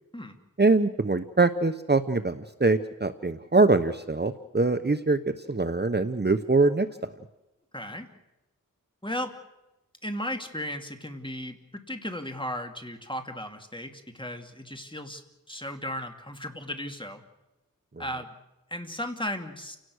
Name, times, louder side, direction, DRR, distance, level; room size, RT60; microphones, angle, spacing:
voice 1, 0.6-6.9, right 3 dB, 30° right, 10 dB, 1.0 m, -23 dB
voice 2, 7.7-8.1 9.0-9.3 10.0-11.6 11.9-15.2 15.5-17.2 18.0-18.3 18.7-19.8, left 1 dB, 15° left, 5 dB, 2.7 m, -35 dB
30.0 x 18.0 x 6.5 m, 0.97 s
wide cardioid pair, 45°, 34 cm